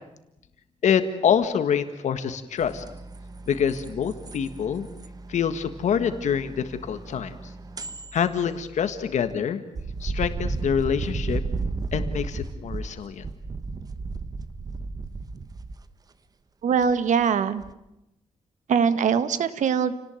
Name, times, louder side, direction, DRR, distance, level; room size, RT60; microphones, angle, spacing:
voice 1, 0.8-2.8 3.5-4.9 5.3-7.3 8.1-9.6 10.0-11.4 11.9-13.2, left 7 dB, 75° left, 10 dB, 1.6 m, -26 dB
sound 1, 2.6-9.3 9.7-15.8 16.8-17.2 17.6-17.7, right 3 dB, 30° right, 1.2 m, -34 dB
voice 2, 16.6-17.6 18.7-19.9, right 7 dB, 80° right, 12 dB, 1.7 m, -22 dB
29.0 x 18.5 x 9.0 m, 0.89 s
wide cardioid pair, 165°, 12 cm